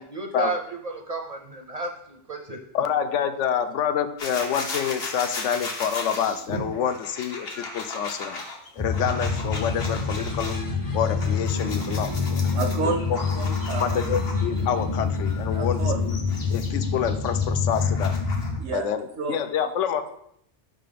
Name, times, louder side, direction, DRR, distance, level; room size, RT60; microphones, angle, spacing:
voice 1, 0.0-2.6, right 3 dB, 45° right, 2 dB, 0.5 m, -33 dB
voice 2, 2.7-8.4 8.8-10.6 10.9-12.6 12.8-12.9 13.8-16.2 16.5-18.2 18.7-20.0, left 8 dB, 85° left, 9 dB, 0.9 m, -27 dB
sound 1, 4.2-10.6 11.0-14.6 15.2-18.6, left 3 dB, 60° left, 1.2 m, -36 dB
sound 2, 8.8-18.6, left 4 dB, 25° left, 0.5 m, -26 dB
voice 3, 12.5-14.1 15.5-16.0 18.6-19.4, right 5 dB, 90° right, 1 dB, 1.1 m, -30 dB
5.5 x 3.8 x 5.0 m, 0.73 s
omnidirectional pair, 1.2 m